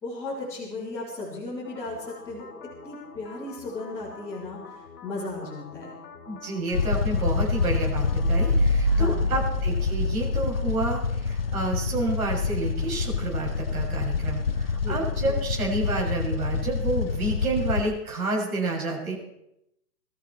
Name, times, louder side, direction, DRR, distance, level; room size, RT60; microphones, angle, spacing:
voice 1, 0.0-2.5 2.8-6.0 8.8-9.3 14.8-15.1, left 2 dB, 5° left, -10 dB, 3.0 m, -36 dB
sound 1, 1.6-8.5, left 5 dB, 65° left, 3.0 m, -46 dB
voice 2, 6.3-19.1, right 2 dB, 55° right, -2 dB, 7.0 m, -29 dB
sound 2, 6.7-17.8, left 5 dB, 40° left, 0.5 m, -27 dB
sound 3, 8.1-11.5, equal, 20° right, 1.8 m, -27 dB
22.0 x 14.0 x 4.5 m, 0.82 s
hypercardioid pair, 170°, 49 cm